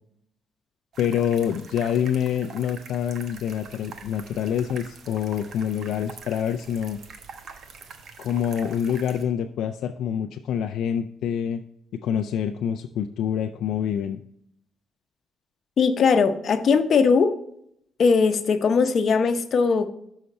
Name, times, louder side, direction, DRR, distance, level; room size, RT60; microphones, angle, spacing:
sound 1, 0.9-9.2, right 5 dB, 65° right, 1.0 m, -44 dB
voice 1, 1.0-7.0 8.2-11.6 11.9-14.2, left 9 dB, 80° left, 6 dB, 0.4 m, -26 dB
voice 2, 15.8-17.3 18.0-19.9, left 5 dB, 55° left, 8 dB, 0.8 m, -19 dB
6.5 x 5.7 x 4.1 m, 0.71 s
cardioid pair, 90°, 0 cm